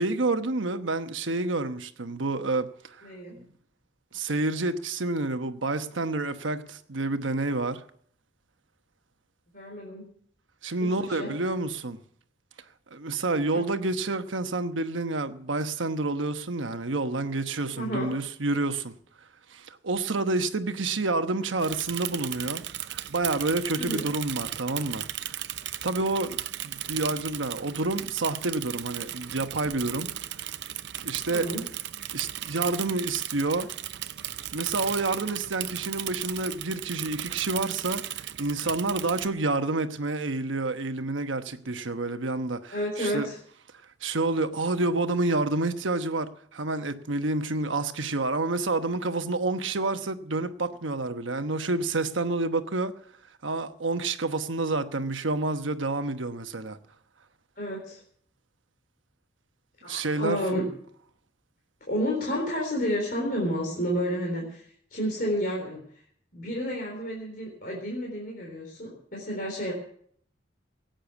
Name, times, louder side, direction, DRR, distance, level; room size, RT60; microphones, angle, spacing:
voice 1, 0.0-3.1 4.1-7.8 10.6-12.0 12.9-18.9 19.5-22.6 22.9-25.0 25.8-26.4 26.6-30.1 31.0-31.5 32.1-33.7 34.5-43.3 44.0-53.0 53.4-56.8 59.8-60.4, right 2 dB, 85° right, 1.1 m, -29 dB
voice 2, 3.0-3.4 9.5-10.1 10.8-11.3 13.5-13.6 17.7-18.1 23.8-24.1 31.3-31.6 42.7-43.4 57.6-58.0 59.8-60.7 61.9-66.0 66.3-69.7, equal, 45° left, 3.9 m, -31 dB
Bicycle / Mechanisms, 21.6-39.3, right 12 dB, 60° right, 0.6 m, -36 dB
17.0 x 9.0 x 7.0 m
head